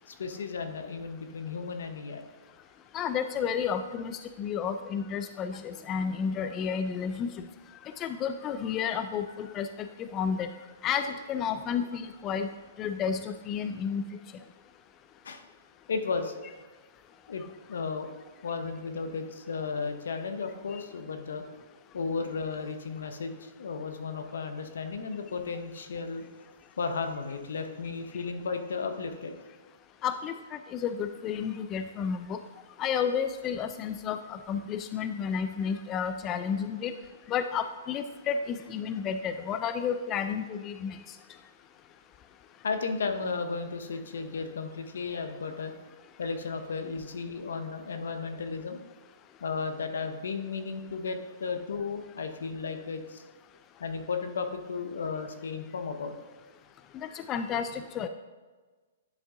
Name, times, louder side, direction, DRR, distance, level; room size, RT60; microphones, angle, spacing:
voice 1, 0.1-2.2 15.2-15.4 15.9-16.3 17.3-17.4 17.7-18.1 18.4-21.4 21.9-26.3 26.8-29.3 42.6-45.7 46.2-48.8 49.4-53.2 53.8-56.2, left 4 dB, 80° left, 7 dB, 0.8 m, -34 dB
voice 2, 2.9-7.3 8.0-10.5 10.8-12.5 12.8-14.0 30.0-30.3 30.7-32.4 32.8-37.0 37.3-41.0 57.3-58.1, left 7 dB, 25° left, 9 dB, 0.3 m, -31 dB
9.9 x 3.6 x 3.6 m, 1.3 s
hypercardioid pair, 140°, 0 cm